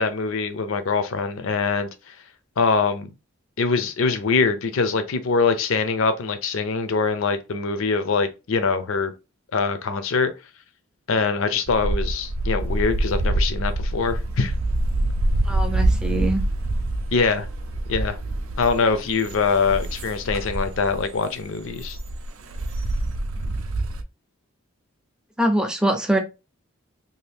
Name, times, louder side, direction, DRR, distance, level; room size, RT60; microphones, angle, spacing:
voice 1, 0.0-1.9 2.6-3.1 3.6-9.1 9.5-10.3 11.1-14.5 17.1-17.5 17.9-18.2 18.6-22.0, left 4 dB, 60° left, 0.5 m, -23 dB
sound 1, 11.7-24.0, right 1 dB, 65° right, 0.4 m, -26 dB
voice 2, 15.5-16.4 25.4-26.2, right 1 dB, 5° right, 0.4 m, -23 dB
2.7 x 2.5 x 3.3 m
head